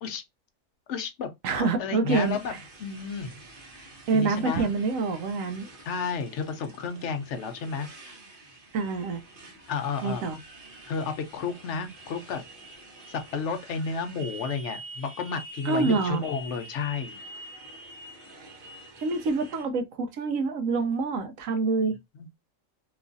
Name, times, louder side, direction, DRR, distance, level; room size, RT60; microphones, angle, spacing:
voice 1, 0.9-3.4 4.1-4.7 5.8-8.2 9.7-10.2 10.9-12.4 13.1-17.2, left 5 dB, 65° left, 0.9 m, -32 dB
voice 2, 1.4-2.6 4.1-5.7 8.7-9.2 10.0-10.4 15.6-16.2 19.0-22.0, right 4 dB, 75° right, 1.0 m, -26 dB
Motorcycle, 2.1-19.6, right 2 dB, 45° right, 1.0 m, -47 dB
3.0 x 2.4 x 2.5 m
omnidirectional pair, 1.4 m